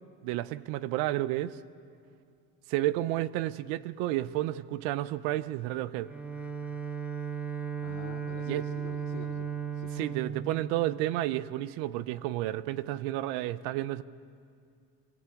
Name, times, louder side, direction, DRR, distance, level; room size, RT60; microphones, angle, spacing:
voice 1, 0.2-1.6 2.7-6.1 8.5-8.6 10.0-14.0, right 15 dB, 70° right, 16 dB, 0.7 m, -31 dB
Bowed string instrument, 6.0-11.6, right 7 dB, 5° right, 1.0 m, -36 dB
voice 2, 7.8-10.1, left 12 dB, 50° left, 5 dB, 1.0 m, -46 dB
25.0 x 15.5 x 8.4 m, 2.3 s
cardioid pair, 150°, 38 cm